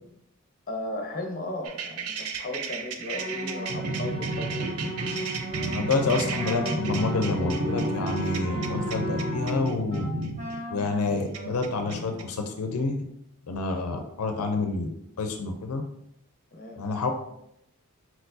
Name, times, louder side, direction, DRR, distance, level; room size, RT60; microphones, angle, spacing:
voice 1, 0.7-4.8 16.5-16.8, left 1 dB, 40° left, 3 dB, 0.7 m, -36 dB
sound 1, 1.6-12.2, right 3 dB, 80° right, 0.5 m, -32 dB
sound 2, 3.1-9.3, right 1 dB, 20° left, 1.6 m, -35 dB
Wind instrument woodwind instrument, 4.9-12.4, left 2 dB, 35° right, 1.1 m, -37 dB
voice 2, 5.7-10.0 10.7-13.0 13.5-14.9 15.2-15.8 16.8-17.1, left 3 dB, 75° left, 5 dB, 0.5 m, -28 dB
4.5 x 4.2 x 2.6 m, 0.78 s
head